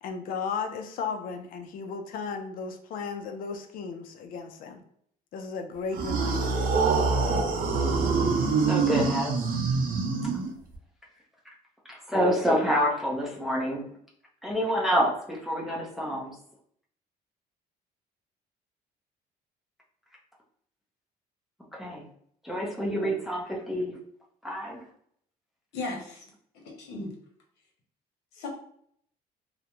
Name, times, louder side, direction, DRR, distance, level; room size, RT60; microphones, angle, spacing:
voice 1, 0.0-4.8 5.3-6.6, left 5 dB, 55° left, 6 dB, 0.4 m, -35 dB
sound 1, 5.9-10.7, right 4 dB, 55° right, 0.6 m, -25 dB
voice 2, 8.6-9.4 11.9-13.8 14.4-16.4 21.7-22.0 22.4-23.9 24.4-24.8, equal, ahead, -3 dB, 0.5 m, -27 dB
voice 3, 25.7-26.2 26.8-27.1 28.3-28.5, left 2 dB, 80° left, 0 dB, 0.9 m, -35 dB
2.4 x 2.1 x 2.9 m, 0.65 s
cardioid pair, 110°, 17 cm